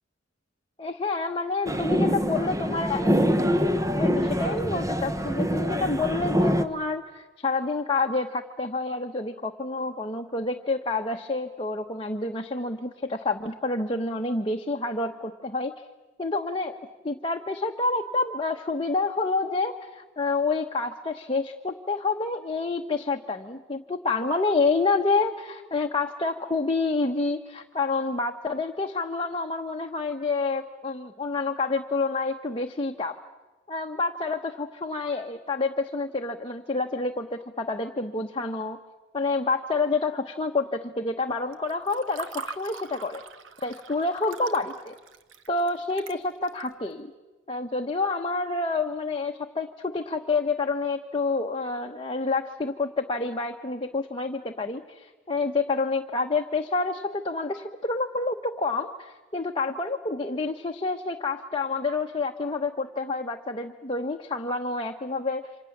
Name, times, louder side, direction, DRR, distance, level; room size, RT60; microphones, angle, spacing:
voice 1, 0.8-3.1 3.9-15.7 16.2-16.8 17.0-33.2 33.7-38.8 39.1-43.2 43.6-44.9 45.5-47.1 47.5-65.4, left 3 dB, 25° left, 3 dB, 1.0 m, -28 dB
sound 1, 1.7-6.7, equal, 15° right, 1.0 m, -25 dB
Water / Fill (with liquid), 41.5-46.7, right 5 dB, 75° right, 1.3 m, -42 dB
28.5 x 26.0 x 7.3 m, 1.2 s
head